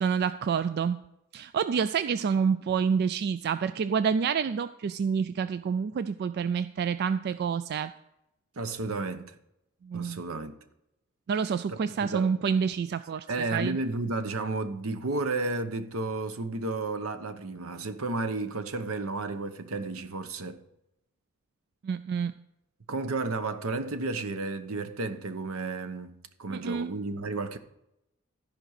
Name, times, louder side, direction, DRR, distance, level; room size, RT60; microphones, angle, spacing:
voice 1, 0.0-1.0 1.3-7.9 9.8-10.2 11.3-13.3 13.5-13.8 21.8-22.3 26.5-26.9, right 6 dB, 50° right, 0.3 m, -28 dB
voice 2, 8.6-9.3 9.9-10.5 11.7-12.3 13.3-20.6 22.9-26.1 26.4-27.6, right 3 dB, 80° right, 0.9 m, -32 dB
13.5 x 5.2 x 6.5 m
head